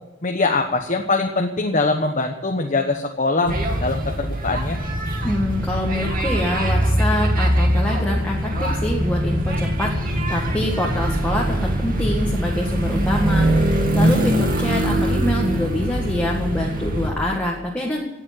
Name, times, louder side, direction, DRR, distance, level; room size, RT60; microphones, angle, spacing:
voice 1, 0.2-4.8, left 3 dB, 40° left, 3 dB, 1.1 m, -22 dB
sound 1, 3.5-17.1, equal, 45° right, 2.6 m, -22 dB
voice 2, 5.2-18.0, left 1 dB, 5° left, -3 dB, 1.8 m, -25 dB
18.0 x 7.4 x 9.2 m, 1.1 s
head